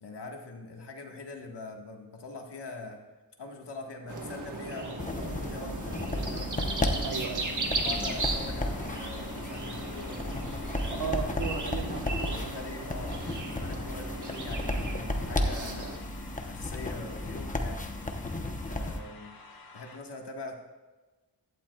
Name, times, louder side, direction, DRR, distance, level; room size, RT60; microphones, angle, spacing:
voice 1, 0.0-3.0 3.4-7.0 7.8-10.2 10.7-11.4 11.8-11.9 12.2-16.0 16.5-17.9 18.7-19.3 19.7-20.6, left 3 dB, 80° left, 2 dB, 1.6 m, -43 dB
sound 1, 4.1-16.0, right 3 dB, 45° right, 1.4 m, -37 dB
sound 2, 5.0-19.0, left 1 dB, 20° left, 0.9 m, -34 dB
voice 2, 7.0-7.5 10.9-12.5 13.3-13.5, right 6 dB, 65° right, 4 dB, 1.2 m, -36 dB
sound 3, 8.2-20.0, left 3 dB, 60° left, 1.3 m, -50 dB
16.0 x 11.5 x 2.3 m, 1.2 s
wide cardioid pair, 140°, 41 cm